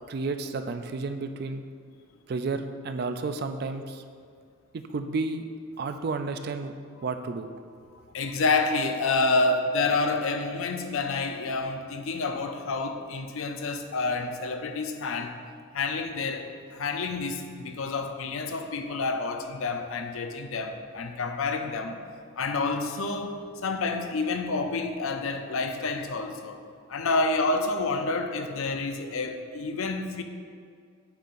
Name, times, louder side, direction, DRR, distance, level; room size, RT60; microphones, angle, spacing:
voice 1, 0.1-1.6 2.3-4.0 4.7-5.4 5.8-6.7 7.0-7.5, right 3 dB, 45° right, 8 dB, 0.3 m, -31 dB
voice 2, 8.1-15.4 15.7-22.0 22.4-26.6 26.9-30.2, left 3 dB, 80° left, 6 dB, 0.5 m, -28 dB
8.8 x 5.6 x 2.5 m, 2.2 s
head